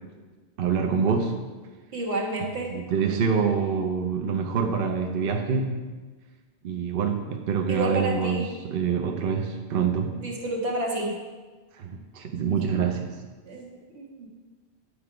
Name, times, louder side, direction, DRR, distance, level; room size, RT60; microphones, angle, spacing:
voice 1, 0.6-1.4 2.7-5.8 6.6-8.4 8.7-10.2 11.8-13.2, right 6 dB, 60° right, 3 dB, 0.8 m, -26 dB
voice 2, 1.9-2.7 7.7-8.5 10.1-11.2 13.5-14.3, right 2 dB, 80° right, -1 dB, 1.7 m, -30 dB
9.7 x 4.6 x 4.9 m, 1.3 s
omnidirectional pair, 1.1 m